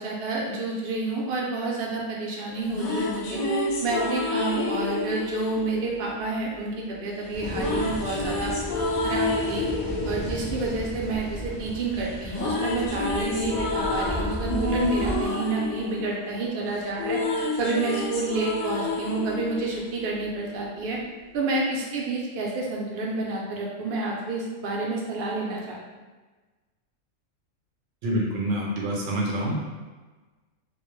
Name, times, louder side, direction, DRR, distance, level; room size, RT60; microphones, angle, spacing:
voice 1, 0.0-3.4 3.8-8.5 9.0-9.7 10.1-17.2 17.6-21.0 21.3-25.8, right 3 dB, 60° right, -2 dB, 0.6 m, -29 dB
sound 1, 2.5-6.6 7.5-11.7 12.0-20.5, left 2 dB, 70° left, 0.9 m, -29 dB
sound 2, 7.3-15.3, equal, ahead, 0.3 m, -35 dB
voice 2, 28.0-29.6, right 1 dB, 80° right, -2 dB, 1.0 m, -26 dB
2.3 x 2.0 x 3.0 m, 1.3 s
omnidirectional pair, 1.3 m